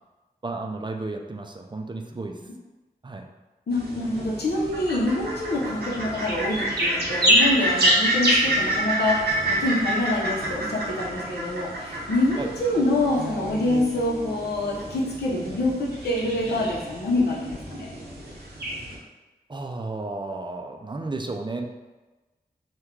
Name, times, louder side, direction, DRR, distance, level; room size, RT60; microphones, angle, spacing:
voice 1, 0.4-2.4 3.0-3.3 12.4-12.5 19.5-21.7, right 3 dB, 30° right, 3 dB, 0.4 m, -33 dB
voice 2, 3.7-17.9, left 1 dB, 85° left, -3 dB, 0.7 m, -26 dB
sound 1, 3.7-19.0, right 1 dB, 85° right, 0.8 m, -27 dB
3.0 x 2.2 x 3.6 m, 1.2 s
cardioid pair, 50°, 17 cm